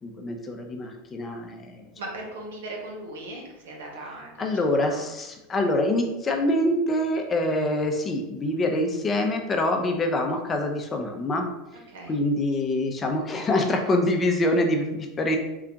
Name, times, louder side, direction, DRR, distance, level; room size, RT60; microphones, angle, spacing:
voice 1, 0.0-1.9 4.4-11.5 12.1-15.4, left 1 dB, 25° left, 3 dB, 0.6 m, -25 dB
voice 2, 1.9-4.5 4.8-5.1 11.7-12.2, right 2 dB, 80° right, -1 dB, 1.1 m, -38 dB
3.8 x 2.3 x 3.4 m, 0.98 s
supercardioid pair, 110°, 0 cm